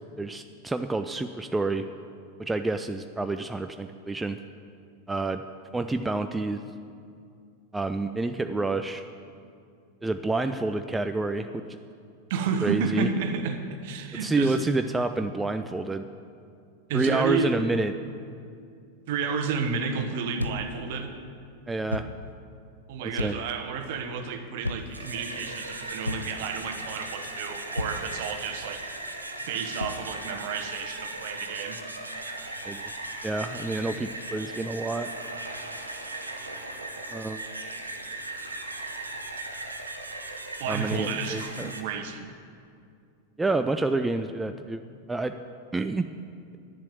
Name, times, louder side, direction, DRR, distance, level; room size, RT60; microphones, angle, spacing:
voice 1, 0.2-1.8 2.4-4.4 5.1-5.4 5.7-6.6 7.7-9.0 10.0-11.8 12.6-13.1 14.2-16.0 16.9-17.9 21.7-22.1 23.2-23.4 32.6-32.8 33.2-35.1 37.1-37.4 40.7-41.7 43.4-44.8 45.1-45.4 45.7-46.1, right 2 dB, 10° right, 8 dB, 0.4 m, -28 dB
voice 2, 12.3-14.6 16.9-17.6 19.1-21.1 22.9-28.9 29.5-31.8 40.6-42.3, right 5 dB, 50° right, 7 dB, 1.1 m, -31 dB
sound 1, 20.4-20.8 21.9-22.2 23.2-23.6 24.6-25.0 26.0-26.5 27.8-28.1 29.8-30.1, left 1 dB, 85° left, 0.4 m, -33 dB
sound 2, 24.8-41.8, right 2 dB, 80° right, 0.9 m, -38 dB
10.0 x 7.4 x 9.1 m, 2.4 s
figure-of-eight pair, 90°, 0 cm